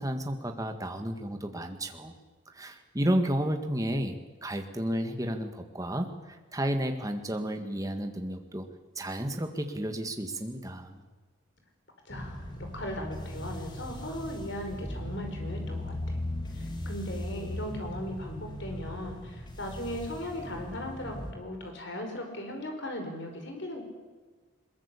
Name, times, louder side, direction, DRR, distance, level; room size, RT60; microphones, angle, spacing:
voice 1, 0.0-2.1 2.5-4.2 4.4-8.7 9.0-11.0, equal, 15° right, 6 dB, 1.8 m, -32 dB
voice 2, 12.1-12.5 12.7-16.2 16.5-23.8, left 1 dB, 60° left, 4 dB, 5.1 m, -38 dB
sound 1, 12.1-21.3, left 1 dB, 20° left, 2.5 m, -38 dB
22.0 x 21.5 x 8.5 m, 1.3 s
head